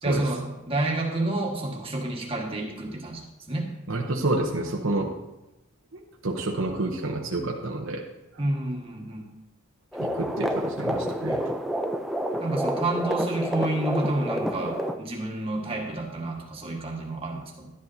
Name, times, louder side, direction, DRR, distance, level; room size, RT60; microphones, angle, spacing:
voice 1, 0.0-3.2 3.5-3.7 8.4-9.3 12.4-17.7, right 2 dB, 25° right, 0 dB, 1.6 m, -29 dB
voice 2, 3.9-5.1 5.9-8.0 8.3-8.4 10.0-11.5, right 2 dB, 65° right, 0 dB, 0.9 m, -29 dB
sound 1, 9.9-15.0, equal, ahead, 0.4 m, -29 dB
11.5 x 10.5 x 2.7 m, 0.99 s
head